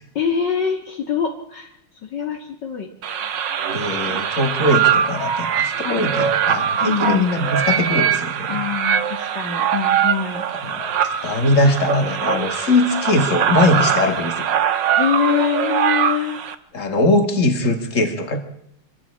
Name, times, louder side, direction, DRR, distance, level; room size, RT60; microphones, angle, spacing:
voice 1, 0.2-1.8 2.0-2.9 5.8-6.3 6.8-7.3 8.5-10.4 14.9-16.4, left 7 dB, 55° left, 3 dB, 2.3 m, -24 dB
sound 1, 3.0-16.5, right 8 dB, 60° right, 1.8 m, -22 dB
voice 2, 3.7-8.6 10.6-14.3 16.7-18.4, left 2 dB, 35° left, 6 dB, 2.7 m, -21 dB
25.0 x 14.5 x 8.7 m, 0.76 s
omnidirectional pair, 2.3 m